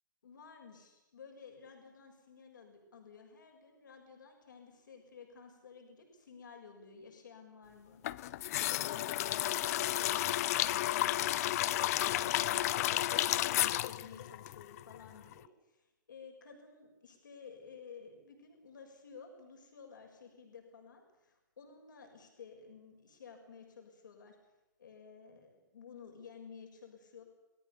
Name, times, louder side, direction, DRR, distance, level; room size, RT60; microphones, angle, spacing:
voice 1, 0.2-13.1 13.5-24.4 24.8-27.2, left 6 dB, 75° left, 2 dB, 6.3 m, -54 dB
sound 1, 8.0-15.1 15.3-15.4, left 14 dB, 50° left, 0.9 m, -32 dB
28.0 x 19.0 x 7.0 m, 1.0 s
hypercardioid pair, 115°, 10 cm